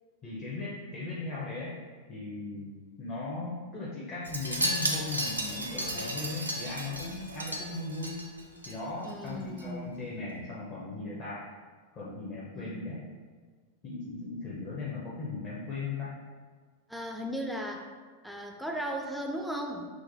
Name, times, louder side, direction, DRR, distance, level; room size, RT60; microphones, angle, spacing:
voice 1, 0.2-1.8 2.1-8.3 8.7-11.4 11.9-13.0 13.8-16.1, left 3 dB, 30° left, -7 dB, 0.7 m, -38 dB
Wind chime, 4.2-8.7 9.0-9.3 9.6-9.7, right 1 dB, 85° right, 0.4 m, -34 dB
voice 2, 9.0-10.0 12.5-12.8 16.9-17.8 18.2-19.9, equal, ahead, 1 dB, 0.4 m, -36 dB
5.9 x 2.1 x 2.6 m, 1.5 s
figure-of-eight pair, 90°, 0 cm